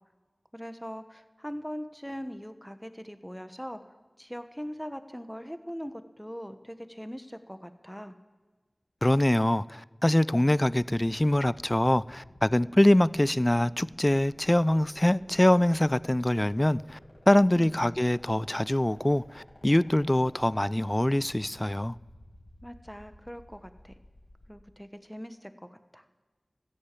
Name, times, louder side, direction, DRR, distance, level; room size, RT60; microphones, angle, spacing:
voice 1, 0.5-3.8 4.2-8.2 17.5-17.8 22.6-24.0 24.5-26.0, equal, 5° left, 1.2 m, -41 dB
voice 2, 9.0-17.0 17.3-22.0, left 1 dB, 25° left, 0.4 m, -24 dB
sound 1, 10.9-24.5, left 1 dB, 50° left, 6.6 m, -54 dB
14.0 x 9.9 x 8.3 m
wide cardioid pair, 45°, 0 cm